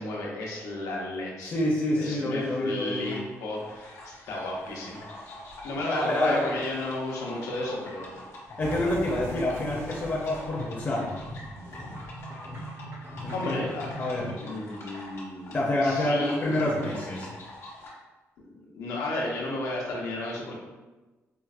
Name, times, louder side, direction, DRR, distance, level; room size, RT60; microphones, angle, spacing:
voice 1, 0.0-1.6 1.9-5.3 5.6-8.2 13.3-13.9 14.4-16.8 18.5-20.6, left 2 dB, 90° left, -3 dB, 0.8 m, -33 dB
voice 2, 1.4-3.1 5.9-6.4 8.6-11.1 13.2-14.4 15.5-17.3, left 1 dB, 30° left, -4 dB, 0.5 m, -27 dB
sound 1, 3.0-17.9, left 1 dB, 65° left, 1.0 m, -45 dB
sound 2, 8.6-14.4, equal, 45° right, 0.6 m, -40 dB
4.5 x 2.0 x 2.4 m, 1.2 s
cardioid pair, 120°, 5 cm